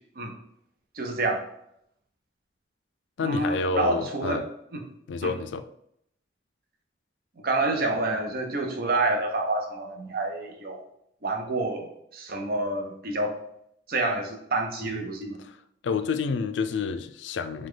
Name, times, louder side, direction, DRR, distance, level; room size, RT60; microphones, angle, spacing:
voice 1, 0.9-1.4 3.2-4.5 4.7-4.8 5.2-5.3 7.4-10.8 11.2-13.4 13.9-15.4, right 2 dB, 55° right, 0.7 m, -28 dB
voice 2, 3.2-4.4 5.1-5.6 14.8-15.0 15.4-15.6 15.8-17.7, left 5 dB, 80° left, 0.4 m, -29 dB
5.0 x 2.3 x 3.8 m
head